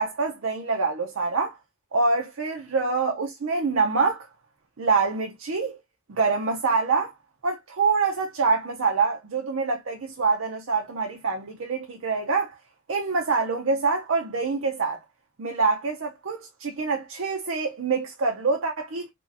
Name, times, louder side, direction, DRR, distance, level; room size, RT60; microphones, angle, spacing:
voice 1, 0.0-1.6 1.9-4.3 4.8-5.8 6.1-7.1 7.4-12.6 12.9-15.0 15.4-19.1, right 4 dB, 65° right, 0.6 m, -25 dB
3.0 x 2.6 x 2.6 m
head